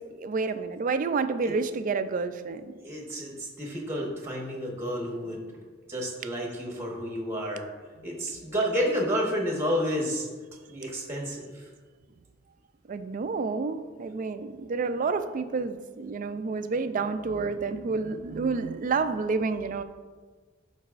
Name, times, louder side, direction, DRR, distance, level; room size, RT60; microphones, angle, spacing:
voice 1, 0.1-2.7 12.9-19.8, right 4 dB, 40° right, 10 dB, 0.3 m, -29 dB
voice 2, 2.8-5.5 5.9-7.6 8.0-10.3 10.7-11.7, equal, 10° right, -1 dB, 1.0 m, -30 dB
12.0 x 4.0 x 2.5 m, 1.4 s
head